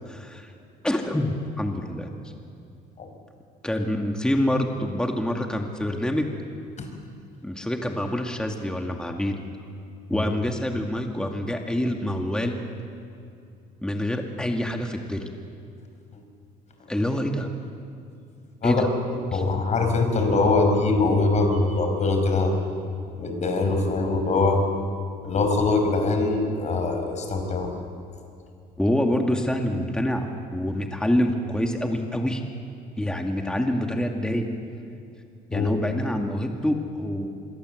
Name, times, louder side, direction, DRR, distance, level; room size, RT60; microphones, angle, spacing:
voice 1, 0.1-0.5 0.8-2.1 3.6-6.3 7.4-9.4 10.1-12.6 13.8-15.2 16.9-17.5 18.6-18.9 19.3-19.4 28.8-30.3 30.5-32.4 33.0-34.5 35.5-37.3, left 1 dB, 5° left, 3 dB, 2.1 m, -26 dB
voice 2, 19.3-22.5 23.1-24.6 25.2-27.7 35.5-35.7, left 3 dB, 45° left, 4 dB, 5.6 m, -22 dB
26.0 x 22.5 x 7.9 m, 2.5 s
cardioid pair, 110°, 17 cm